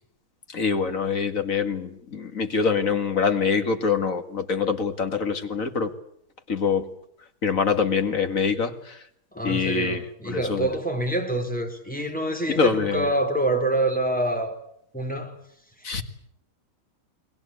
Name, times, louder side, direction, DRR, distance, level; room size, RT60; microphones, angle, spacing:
voice 1, 0.5-5.9 6.5-6.9 7.4-8.7 9.4-10.7 12.6-13.1 15.8-16.0, left 5 dB, 55° left, 2.3 m, -24 dB
voice 2, 9.3-14.5 14.9-15.4, right 1 dB, 5° left, 4.2 m, -26 dB
30.0 x 21.0 x 8.5 m
omnidirectional pair, 1.7 m